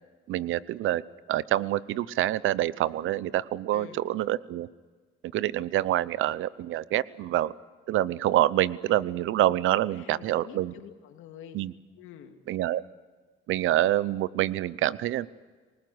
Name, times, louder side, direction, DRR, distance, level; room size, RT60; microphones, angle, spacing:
voice 1, 0.3-1.0 1.3-4.7 5.3-7.5 7.9-10.7 11.5-11.7 12.5-12.8 13.5-15.3, right 13 dB, 85° right, 19 dB, 0.8 m, -26 dB
voice 2, 9.9-11.6 11.9-12.4, left 9 dB, 90° left, 5 dB, 2.5 m, -47 dB
24.0 x 20.0 x 8.0 m, 1.4 s
cardioid pair, 90°, 20 cm